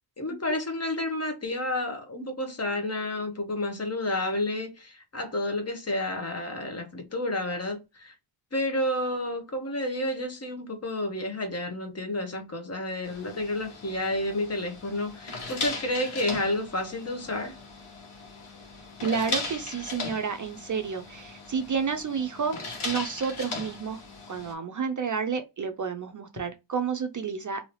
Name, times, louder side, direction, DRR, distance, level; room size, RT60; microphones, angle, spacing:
voice 1, 0.2-8.1 8.5-17.5, left 1 dB, 30° left, 0.9 m, -30 dB
sound 1, 13.0-24.5, left 3 dB, 80° left, 1.3 m, -38 dB
voice 2, 19.0-22.6 22.8-24.0 24.3-27.6, right 6 dB, 40° right, 0.4 m, -30 dB
2.7 x 2.7 x 3.1 m
wide cardioid pair, 100°, 50 cm